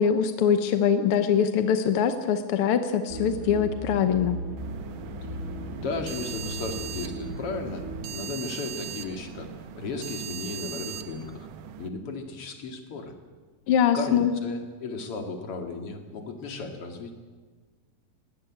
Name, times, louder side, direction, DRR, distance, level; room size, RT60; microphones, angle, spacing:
voice 1, 0.0-4.4 13.7-14.3, left 8 dB, 65° left, 8 dB, 1.4 m, -23 dB
sound 1, 3.1-8.6, right 1 dB, 25° right, 2.8 m, -37 dB
sound 2, 4.6-11.9, right 10 dB, 85° right, 2.5 m, -39 dB
voice 2, 5.8-11.5 11.8-13.1 13.9-17.1, left 4 dB, 50° left, 4 dB, 2.9 m, -35 dB
20.0 x 17.5 x 8.7 m, 1.4 s
omnidirectional pair, 3.5 m